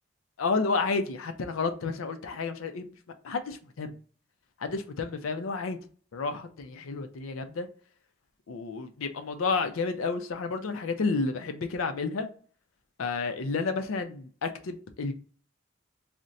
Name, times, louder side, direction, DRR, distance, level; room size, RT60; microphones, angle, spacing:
voice 1, 0.4-2.9 3.2-4.0 4.6-5.8 6.1-7.7 8.5-12.3 13.0-15.1, left 4 dB, 90° left, 0.5 m, -31 dB
2.5 x 2.1 x 4.0 m
head